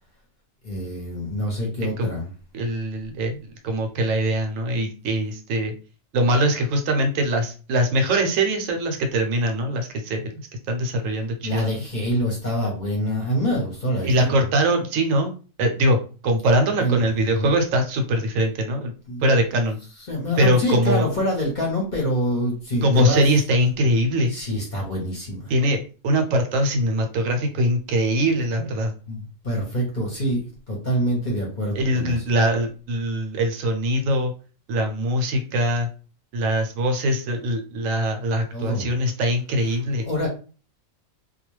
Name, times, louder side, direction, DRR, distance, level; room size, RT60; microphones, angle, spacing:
voice 1, 0.6-2.3 11.4-14.4 16.8-17.0 17.3-17.5 19.1-19.4 20.1-23.2 24.3-25.5 29.1-32.2 38.5-38.9 40.0-40.3, equal, 45° left, -2 dB, 0.8 m, -26 dB
voice 2, 2.5-5.7 6.1-11.8 14.0-15.3 15.6-18.9 19.2-19.8 20.4-21.1 22.8-24.4 25.5-28.9 31.7-34.3 34.7-35.9 36.3-40.1, right 1 dB, 75° right, 5 dB, 1.0 m, -22 dB
2.3 x 2.2 x 3.0 m, 0.36 s
omnidirectional pair, 1.4 m